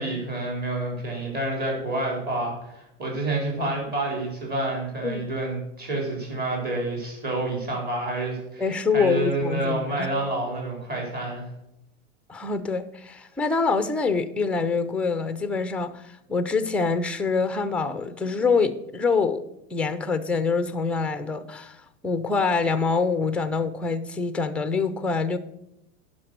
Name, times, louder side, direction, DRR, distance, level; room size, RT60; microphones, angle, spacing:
voice 1, 0.0-8.6 8.9-11.4, right 2 dB, 25° right, -1 dB, 3.8 m, -28 dB
voice 2, 8.6-10.1 12.3-19.4 19.7-25.4, left 4 dB, 5° left, 11 dB, 0.5 m, -25 dB
10.5 x 6.1 x 6.5 m, 0.85 s
supercardioid pair, 140°, 37 cm